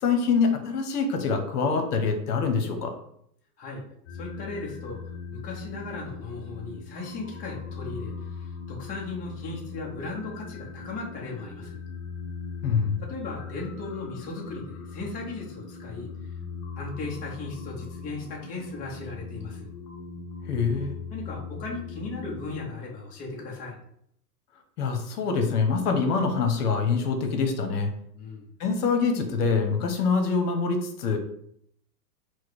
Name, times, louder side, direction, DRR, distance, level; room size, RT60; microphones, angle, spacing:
voice 1, 0.0-2.9 12.6-13.0 20.4-20.9 24.8-27.9 28.6-31.2, left 5 dB, 70° left, 5 dB, 1.0 m, -25 dB
sound 1, 4.1-22.7, left 5 dB, 45° left, 1.0 m, -40 dB
voice 2, 4.1-5.0 5.3-11.8 13.0-16.1 16.8-19.7 21.1-23.7 28.1-28.5, left 3 dB, 15° left, -2 dB, 0.7 m, -37 dB
4.5 x 2.2 x 4.6 m, 0.69 s
hypercardioid pair, 140°, 48 cm